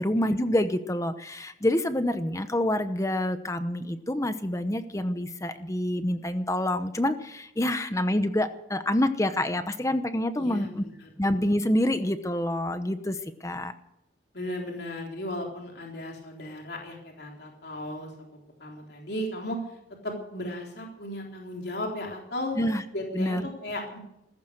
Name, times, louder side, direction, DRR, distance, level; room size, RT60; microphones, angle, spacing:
voice 1, 0.0-10.8 11.2-13.7 22.6-22.8 23.1-23.4, left 1 dB, 15° left, 10 dB, 0.9 m, -27 dB
voice 2, 10.4-11.1 14.3-18.1 18.6-19.6 20.0-22.7 22.9-24.0, left 1 dB, 60° left, 0 dB, 3.8 m, -35 dB
15.5 x 14.5 x 6.5 m, 0.83 s
head